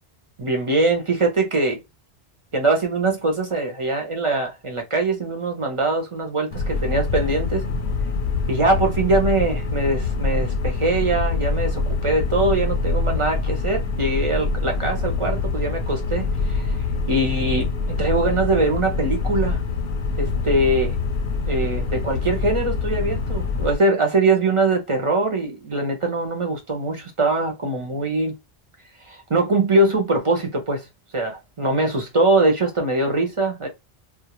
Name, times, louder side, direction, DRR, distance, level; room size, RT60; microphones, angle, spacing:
voice 1, 0.4-1.8 2.5-7.6 8.5-16.8 17.1-17.7 18.0-19.6 20.2-20.9 21.5-28.4 29.0-30.9 31.1-33.7, right 2 dB, 35° right, 0.6 m, -22 dB
sound 1, 6.5-23.8, left 4 dB, 90° left, 0.9 m, -25 dB
2.3 x 2.1 x 2.9 m
omnidirectional pair, 1.1 m